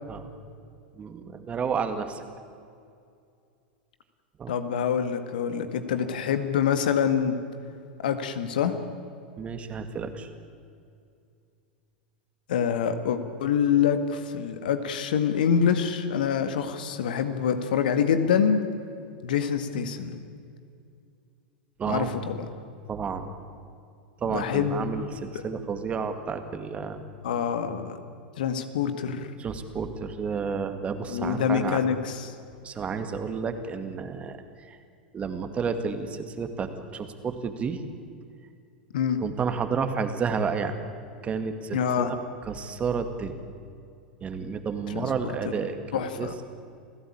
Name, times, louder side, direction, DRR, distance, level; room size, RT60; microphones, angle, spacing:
voice 1, 0.9-2.2 4.4-4.5 9.4-10.3 21.8-22.1 22.9-23.3 24.2-27.0 29.4-31.8 32.6-34.4 34.7-34.8 35.1-37.8 39.2-40.7 41.2-42.2 42.5-43.4 44.2-46.3, right 5 dB, 25° right, 8 dB, 2.2 m, -31 dB
voice 2, 4.5-7.4 8.0-8.7 12.5-18.6 19.2-20.2 21.9-22.5 24.3-24.9 27.2-28.0 28.4-29.3 31.1-32.3 38.9-39.2 41.7-42.2 44.9-45.1 45.9-46.3, left 7 dB, 65° left, 9 dB, 1.9 m, -26 dB
29.0 x 16.5 x 8.7 m, 2.4 s
figure-of-eight pair, 90°, 5 cm